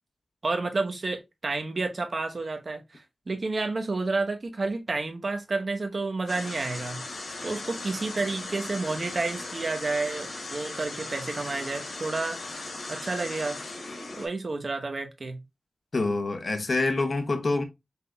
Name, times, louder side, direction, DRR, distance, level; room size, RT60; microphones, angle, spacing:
voice 1, 0.4-7.0 7.4-12.4 12.9-13.6 14.1-15.4, right 3 dB, 55° right, 0.9 m, -30 dB
sound 1, 6.3-14.3, left 2 dB, 80° left, 2.3 m, -38 dB
voice 2, 15.9-17.6, left 3 dB, 60° left, 0.8 m, -26 dB
5.6 x 3.7 x 2.2 m
wide cardioid pair, 65°, 0 cm